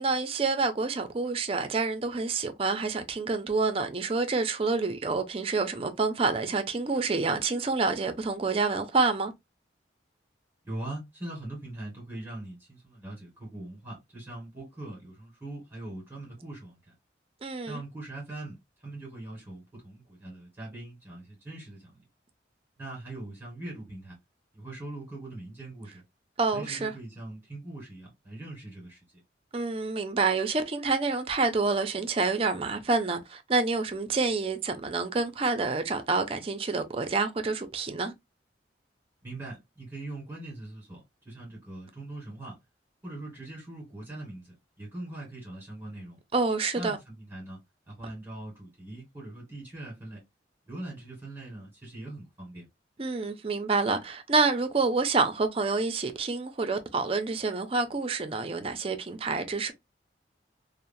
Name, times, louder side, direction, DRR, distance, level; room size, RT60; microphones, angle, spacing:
voice 1, 0.0-9.3 17.4-17.8 26.4-26.9 29.5-38.1 46.3-47.0 53.0-59.7, right 3 dB, 30° right, 0.4 m, -28 dB
voice 2, 10.6-16.9 17.7-18.6 18.8-22.0 22.8-24.1 24.5-26.0 26.5-29.0 39.2-42.6 43.0-46.2 46.7-47.6 47.9-50.2 50.7-52.7, right 2 dB, 15° right, 1.5 m, -41 dB
3.0 x 2.0 x 2.5 m
head